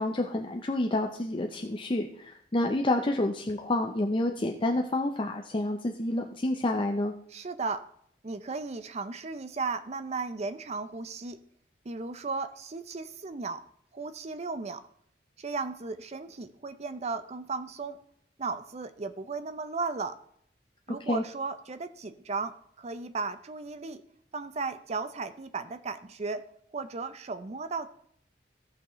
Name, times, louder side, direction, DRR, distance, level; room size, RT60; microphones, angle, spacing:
voice 1, 0.0-7.1 21.0-21.2, left 1 dB, 30° left, 3 dB, 0.6 m, -29 dB
voice 2, 7.3-7.8 8.2-11.4 11.9-13.6 13.9-14.8 15.4-18.0 18.4-20.2 20.9-24.0 24.3-26.5 26.7-27.9, right 4 dB, 40° right, 11 dB, 0.5 m, -35 dB
16.5 x 6.0 x 3.1 m, 0.67 s
head